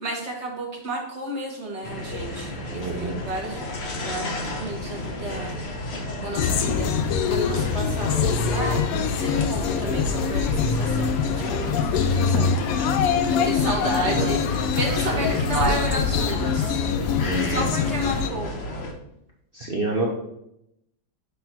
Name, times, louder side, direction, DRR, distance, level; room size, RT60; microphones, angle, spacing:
voice 1, 0.0-3.7 4.0-5.5 6.2-8.8 9.2-16.8 17.5-18.6, right 2 dB, 45° right, -1 dB, 1.0 m, -32 dB
sound 1, 1.8-18.9, left 1 dB, 45° left, 0.9 m, -33 dB
voice 2, 2.7-3.1 14.0-14.3 15.1-15.3 17.2-17.7 19.5-20.0, right 2 dB, 65° right, -2 dB, 0.5 m, -28 dB
sound 2, 6.3-18.3, left 6 dB, 80° left, 0.7 m, -24 dB
6.6 x 3.0 x 5.7 m, 0.82 s
omnidirectional pair, 2.1 m